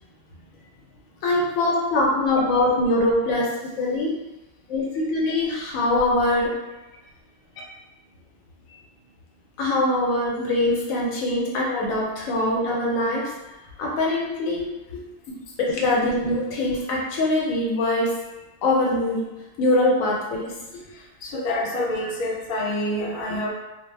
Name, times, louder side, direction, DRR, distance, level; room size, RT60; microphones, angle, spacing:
voice 1, 1.2-3.5 3.8-4.1 4.7-6.5 9.6-13.3 13.8-14.7 15.6-18.1 18.6-19.2 19.6-20.6, left 2 dB, 75° left, -3 dB, 1.0 m, -22 dB
voice 2, 21.2-23.5, left 1 dB, 55° left, -4 dB, 0.6 m, -27 dB
2.4 x 2.0 x 3.1 m, 1.0 s
omnidirectional pair, 1.5 m